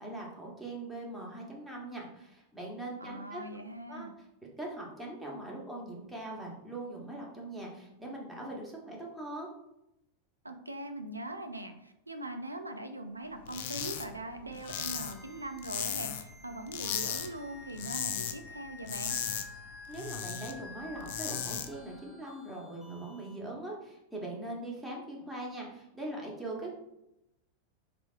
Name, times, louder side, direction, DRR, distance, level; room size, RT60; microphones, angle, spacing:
voice 1, 0.0-3.4 3.9-4.1 4.6-9.5 19.9-26.7, right 2 dB, 5° right, -3 dB, 1.1 m, -41 dB
voice 2, 3.0-4.1 10.4-19.2, right 1 dB, 85° right, 7 dB, 0.3 m, -41 dB
sound 1, 13.5-14.1 14.3-16.3 16.7-17.3 17.6-18.4 18.7-20.5 20.9-21.7, left 9 dB, 55° left, 0.4 m, -36 dB
sound 2, 14.6-23.4, left 3 dB, 15° left, 0.8 m, -51 dB
3.4 x 3.3 x 2.4 m, 0.85 s
figure-of-eight pair, 90°, 0 cm